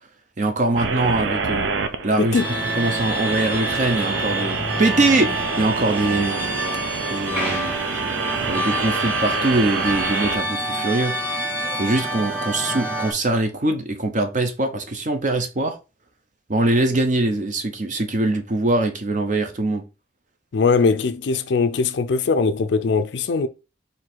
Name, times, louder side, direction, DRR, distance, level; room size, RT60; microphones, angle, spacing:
voice 1, 0.4-1.7 2.0-2.4 2.8-6.4 7.1-7.7 8.4-11.5 11.7-15.8 16.5-19.8, right 2 dB, 40° right, 0.6 m, -22 dB
sound 1, 0.8-10.4, right 5 dB, 85° right, 0.5 m, -27 dB
sound 2, 2.3-13.1, right 1 dB, 10° right, 1.6 m, -27 dB
voice 2, 20.5-23.5, left 4 dB, 65° left, 0.4 m, -20 dB
4.6 x 2.6 x 3.8 m
head